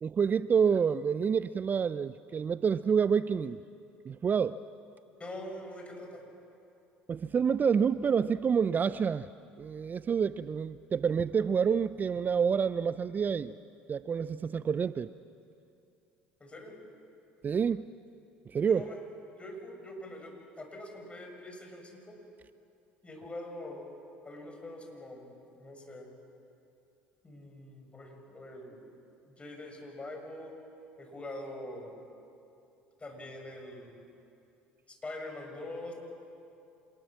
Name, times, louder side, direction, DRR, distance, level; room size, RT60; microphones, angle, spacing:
voice 1, 0.0-3.6 4.1-4.6 7.1-9.3 9.6-13.5 13.9-15.1 17.4-17.9 18.5-18.9, right 6 dB, 35° right, 15 dB, 0.5 m, -28 dB
voice 2, 5.2-6.2 16.4-16.8 18.7-19.0 19.3-22.2 23.0-23.8 24.2-26.1 27.2-28.9 29.3-30.6 31.0-32.0 33.0-34.0 34.9-35.9, left 1 dB, 20° left, 2 dB, 6.7 m, -44 dB
27.0 x 20.0 x 7.5 m, 2.6 s
hypercardioid pair, 65°, 5 cm